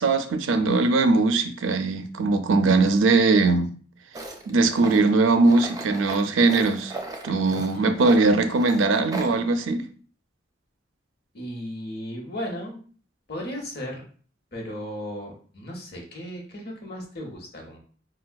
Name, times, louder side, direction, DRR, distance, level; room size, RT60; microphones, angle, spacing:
voice 1, 0.0-3.7 4.5-6.9 7.2-9.9, right 3 dB, 90° right, 9 dB, 0.4 m, -20 dB
Tools, 4.1-9.4, right 2 dB, 20° right, 0.3 m, -37 dB
voice 2, 7.5-8.0 11.3-12.8 13.3-14.1 14.5-17.8, equal, 55° left, 0 dB, 0.9 m, -36 dB
4.3 x 2.2 x 2.2 m, 0.43 s
head